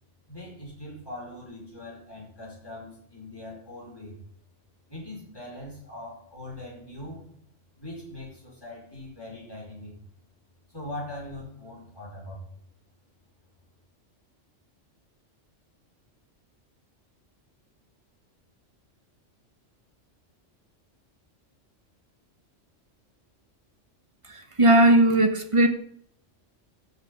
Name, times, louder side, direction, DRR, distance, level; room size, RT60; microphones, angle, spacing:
voice 1, 0.3-4.2 4.9-7.2 7.8-10.0 10.7-12.4, left 1 dB, 20° left, 5.5 m, -41 dB
voice 2, 24.3-25.7, right 1 dB, 25° right, 1.2 m, -18 dB
14.5 x 6.3 x 5.5 m
omnidirectional pair, 1.3 m